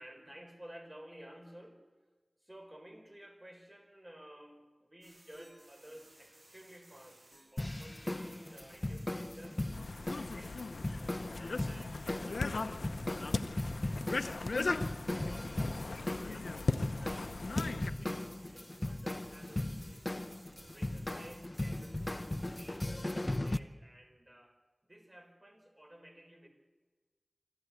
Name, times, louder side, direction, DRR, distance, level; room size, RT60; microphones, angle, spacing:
voice 1, 0.0-1.9 2.4-10.7 11.4-14.6 15.1-20.3 20.7-26.5, right 1 dB, 20° right, 5 dB, 4.0 m, -55 dB
sound 1, 5.0-22.7, right 1 dB, 45° right, 7.5 m, -61 dB
sound 2, 7.6-23.6, left 1 dB, 30° left, 0.7 m, -38 dB
sound 3, 9.7-17.9, left 3 dB, 85° left, 0.7 m, -37 dB
25.5 x 13.0 x 8.3 m, 1.3 s
wide cardioid pair, 65°, 0 cm